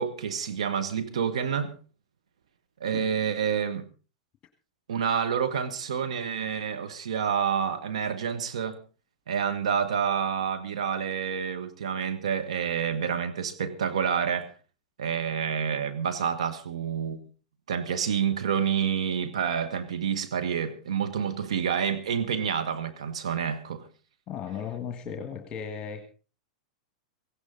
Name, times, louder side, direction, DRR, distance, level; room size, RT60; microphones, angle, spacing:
voice 1, 0.0-1.7 2.8-3.8 4.9-8.8 9.3-14.5 15.0-17.2 17.7-23.9, right 7 dB, 70° right, 1.4 m, -28 dB
voice 2, 24.3-26.1, left 7 dB, 30° left, 1.7 m, -36 dB
17.5 x 16.5 x 4.0 m
figure-of-eight pair, 95°, 3 cm